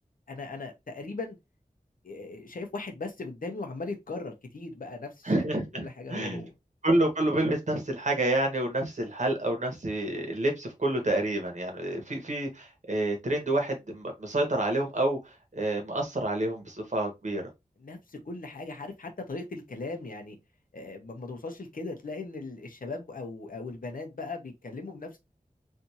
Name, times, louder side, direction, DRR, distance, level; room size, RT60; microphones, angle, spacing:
voice 1, 0.3-1.4 2.0-6.5 17.8-20.4 20.7-25.2, left 3 dB, 75° left, 0.9 m, -38 dB
voice 2, 5.2-6.4 6.8-17.4, right 1 dB, 55° right, 1.3 m, -28 dB
3.4 x 2.7 x 2.8 m
wide cardioid pair, 65°, 14 cm